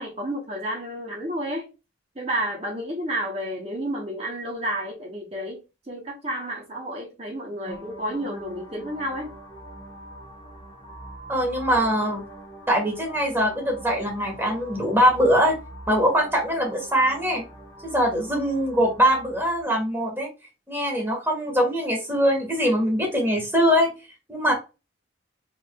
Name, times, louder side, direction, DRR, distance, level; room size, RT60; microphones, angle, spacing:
voice 1, 0.0-1.7 2.1-5.6 5.9-9.3, right 1 dB, 30° right, 1.2 m, -31 dB
sound 1, 7.6-19.6, right 1 dB, 20° left, 1.2 m, -43 dB
voice 2, 11.3-12.2 12.7-15.6 15.9-17.4 17.8-20.3 20.7-23.9 24.3-24.5, equal, 10° right, 1.6 m, -22 dB
4.1 x 3.6 x 2.4 m
head